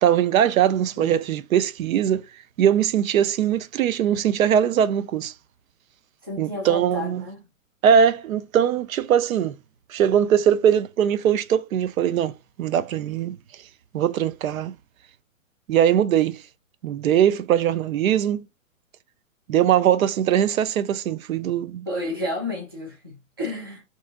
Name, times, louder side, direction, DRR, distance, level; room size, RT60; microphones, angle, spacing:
voice 1, 0.0-2.2 2.6-5.3 6.4-7.2 7.8-9.6 9.9-13.4 13.9-14.8 15.7-16.4 16.8-18.5 19.5-21.9, right 9 dB, 85° right, 0.6 m, -21 dB
voice 2, 1.0-1.3 6.2-7.5 21.9-23.8, left 1 dB, 20° right, 0.4 m, -31 dB
2.8 x 2.5 x 3.5 m
hypercardioid pair, 170°, 40 cm